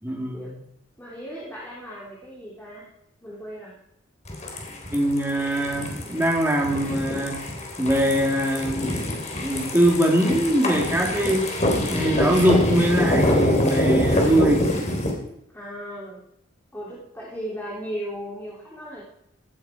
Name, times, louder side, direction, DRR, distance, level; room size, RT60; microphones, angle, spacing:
voice 1, 0.0-0.6 4.7-7.4 7.8-9.1 9.3-11.5 11.9-14.7, right 1 dB, 10° right, -1 dB, 3.6 m, -22 dB
voice 2, 1.0-2.9 3.2-3.7 15.5-16.2 16.7-19.0, equal, 10° left, -6 dB, 3.7 m, -36 dB
sound 1, 4.3-15.1, left 1 dB, 35° left, 3.8 m, -25 dB
18.0 x 14.0 x 4.7 m, 0.77 s
head